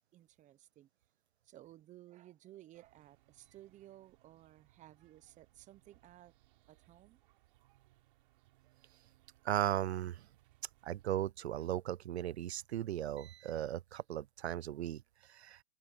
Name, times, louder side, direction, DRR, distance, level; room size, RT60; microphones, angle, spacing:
voice 1, 0.1-0.9 1.4-6.3 6.7-7.2, right 14 dB, 25° right, 1.1 m, -57 dB
sound 1, 2.7-11.1, right 17 dB, 55° right, 3.6 m, -69 dB
voice 2, 9.4-10.3 10.8-15.6, right 12 dB, 75° right, 0.7 m, -37 dB
hypercardioid pair, 130°, 32 cm